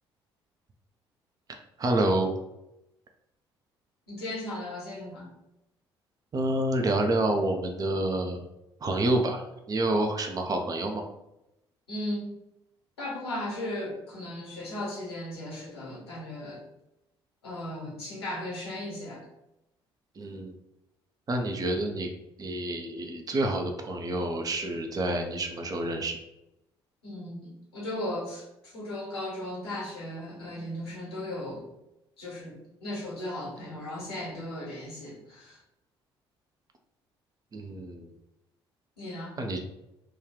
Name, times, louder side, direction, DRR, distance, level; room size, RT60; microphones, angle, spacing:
voice 1, 1.8-2.3 6.3-8.5 8.8-11.0 20.2-20.5 21.3-22.1 22.4-26.2 37.5-38.1 39.4-39.6, right 1 dB, 30° right, 4 dB, 0.5 m, -28 dB
voice 2, 4.1-5.3 11.9-12.4 13.0-16.6 17.4-19.3 27.0-31.7 32.2-35.6 39.0-39.3, left 1 dB, 85° left, -5 dB, 1.2 m, -36 dB
3.2 x 2.3 x 3.5 m, 0.88 s
figure-of-eight pair, 50°, 13 cm